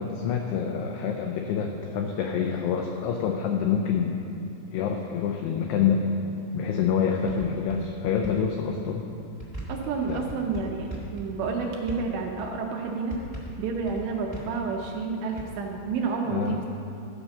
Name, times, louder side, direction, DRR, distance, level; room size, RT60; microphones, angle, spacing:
voice 1, 0.0-4.2 4.7-6.1 6.5-9.0 10.1-10.3 16.3-16.6, left 7 dB, 85° left, 2 dB, 2.3 m, -27 dB
sound 1, 7.3-7.9 8.2-8.3 9.4-11.5 11.9-12.2 13.1-14.6 15.4-15.5, right 1 dB, 35° right, 0.5 m, -38 dB
voice 2, 9.7-13.2 13.6-16.7, right 4 dB, 80° right, 1 dB, 2.7 m, -30 dB
13.0 x 5.3 x 7.1 m, 2.7 s
omnidirectional pair, 5.5 m